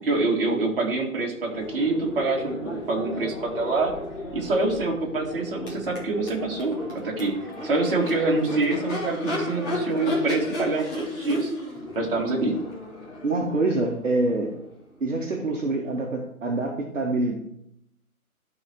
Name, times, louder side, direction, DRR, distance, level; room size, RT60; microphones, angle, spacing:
voice 1, 0.0-3.9 4.3-6.8 7.0-7.3 7.6-11.5 12.0-12.5, right 3 dB, 40° right, -1 dB, 2.1 m, -26 dB
Crowd / Race car auto racing / Accelerating revving vroom, 1.4-15.2, left 1 dB, 15° left, 1.8 m, -34 dB
voice 2, 13.2-14.5 15.0-17.4, right 2 dB, 60° right, 0 dB, 1.5 m, -25 dB
11.5 x 4.4 x 4.4 m, 0.76 s
figure-of-eight pair, 145°, 43 cm